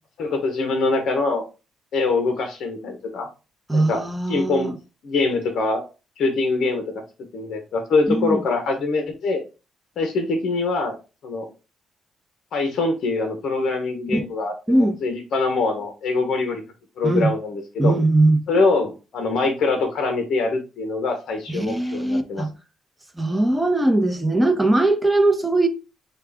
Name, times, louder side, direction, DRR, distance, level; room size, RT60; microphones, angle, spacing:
voice 1, 0.2-1.4 1.9-3.3 3.7-4.7 5.0-5.8 6.2-7.0 7.3-9.4 10.0-11.0 11.2-11.5 12.5-16.6 17.0-17.9 18.5-22.4, left 3 dB, 65° left, 0.8 m, -24 dB
voice 2, 3.7-4.7 8.1-8.4 14.1-14.2 14.7-15.0 17.0-17.3 17.8-18.4 21.5-22.5 23.2-25.7, right 2 dB, 10° right, 0.8 m, -20 dB
4.9 x 2.3 x 3.4 m
cardioid pair, 90°, 0 cm